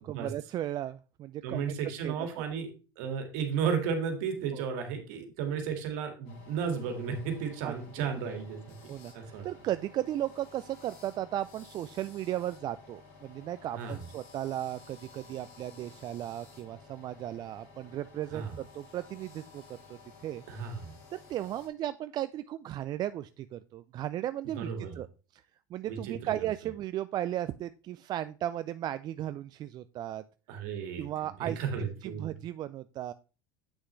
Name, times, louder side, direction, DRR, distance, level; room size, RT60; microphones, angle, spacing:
voice 1, 0.0-2.4 4.5-4.7 7.6-8.3 8.9-20.4 21.1-25.1 25.3-25.4 25.7-30.2 31.0-33.1, right 12 dB, 45° right, 13 dB, 0.4 m, -36 dB
voice 2, 1.4-2.7 3.0-9.5 13.7-14.1 18.3-18.6 20.5-21.0 24.6-25.0 25.9-26.3 30.5-32.3, right 6 dB, 70° right, 6 dB, 1.9 m, -34 dB
sound 1, 6.2-21.7, left 4 dB, 70° left, 2.9 m, -54 dB
8.1 x 6.3 x 3.2 m, 0.33 s
hypercardioid pair, 85°, 10 cm